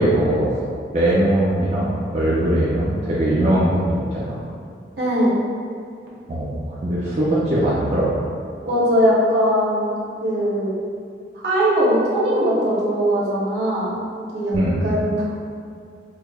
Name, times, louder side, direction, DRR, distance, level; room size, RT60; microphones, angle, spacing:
voice 1, 0.0-4.4 6.3-8.1 14.5-14.8, right 1 dB, 40° right, -8 dB, 0.4 m, -20 dB
voice 2, 5.0-5.3 8.7-10.7 11.4-13.9 14.3-14.5 14.8-15.2, equal, 70° right, -7 dB, 0.9 m, -20 dB
4.6 x 2.0 x 2.3 m, 2.3 s
head